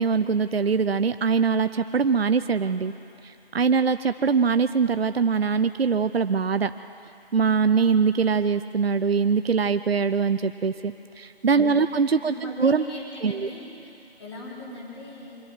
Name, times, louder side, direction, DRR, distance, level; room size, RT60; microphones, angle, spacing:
voice 1, 0.0-2.9 3.2-6.7 7.3-12.8 13.2-13.3, right 5 dB, 70° right, 11 dB, 0.6 m, -22 dB
voice 2, 12.2-13.9 14.2-15.4, left 2 dB, 25° left, -5 dB, 3.7 m, -39 dB
23.5 x 11.5 x 9.5 m, 2.7 s
figure-of-eight pair, 165°, 31 cm